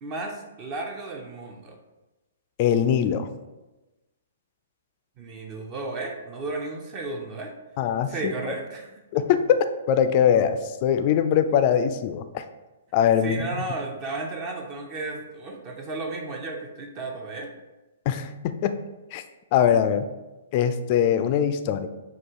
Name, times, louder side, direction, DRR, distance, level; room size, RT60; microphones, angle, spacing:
voice 1, 0.0-1.8 5.2-7.5 8.1-8.9 13.2-17.5, right 3 dB, 30° right, 2 dB, 0.6 m, -33 dB
voice 2, 2.6-3.3 7.8-8.3 9.1-9.4 9.9-12.4 12.9-13.4 18.1-18.7 19.1-19.2 19.5-20.1 20.5-21.9, left 9 dB, 35° left, 9 dB, 0.3 m, -22 dB
6.2 x 2.4 x 3.6 m, 1.1 s
figure-of-eight pair, 120°, 0 cm